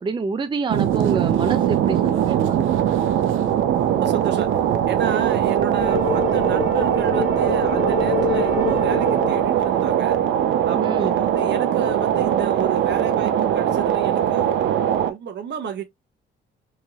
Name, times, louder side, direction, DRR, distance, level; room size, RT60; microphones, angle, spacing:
voice 1, 0.0-2.9 10.7-11.2, right 4 dB, 25° right, 0.5 m, -27 dB
sound 1, 0.7-15.1, right 10 dB, 80° right, 0.6 m, -21 dB
voice 2, 4.0-4.5 4.9-10.2 10.6-14.6 15.1-15.8, right 8 dB, 60° right, 1.1 m, -31 dB
sound 2, 5.8-10.2, left 8 dB, 40° left, 0.4 m, -28 dB
4.5 x 3.1 x 2.3 m
cardioid pair, 90°, 20 cm